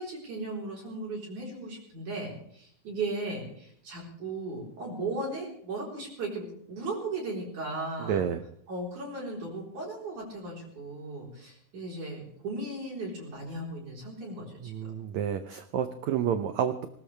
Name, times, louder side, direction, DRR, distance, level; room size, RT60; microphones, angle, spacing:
voice 1, 0.0-8.2 8.7-14.9, right 2 dB, 50° right, -3 dB, 5.4 m, -36 dB
voice 2, 8.1-8.4 14.6-16.9, right 9 dB, 85° right, 9 dB, 1.6 m, -29 dB
20.5 x 19.5 x 3.4 m, 0.66 s
omnidirectional pair, 4.3 m